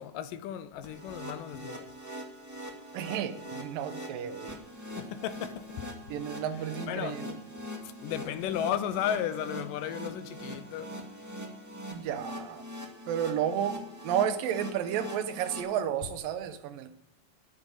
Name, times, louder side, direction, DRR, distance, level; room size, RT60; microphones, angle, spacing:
voice 1, 0.0-1.9 5.0-5.9 6.9-7.2 8.0-10.9, left 10 dB, 80° left, 2.4 m, -34 dB
sound 1, 0.8-15.6, equal, 10° right, 1.0 m, -42 dB
voice 2, 2.9-4.6 6.1-7.4 11.9-12.6 13.1-13.8 14.0-16.9, right 9 dB, 90° right, 2.7 m, -32 dB
9.7 x 9.0 x 9.9 m
omnidirectional pair, 3.9 m